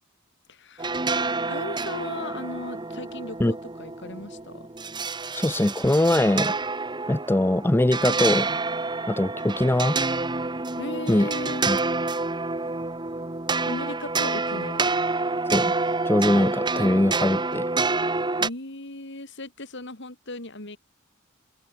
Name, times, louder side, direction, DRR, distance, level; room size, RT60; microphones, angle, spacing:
voice 1, 0.5-4.7 10.8-11.6 13.6-14.9 18.4-20.8, left 2 dB, 55° left, 4.0 m, -37 dB
sound 1, 0.8-18.5, right 3 dB, 20° right, 1.3 m, -28 dB
voice 2, 5.3-6.6 7.1-8.6 9.1-10.0 11.1-11.3 11.7-11.8 15.5-15.7 16.0-17.7, left 1 dB, 10° left, 0.5 m, -22 dB
open air
head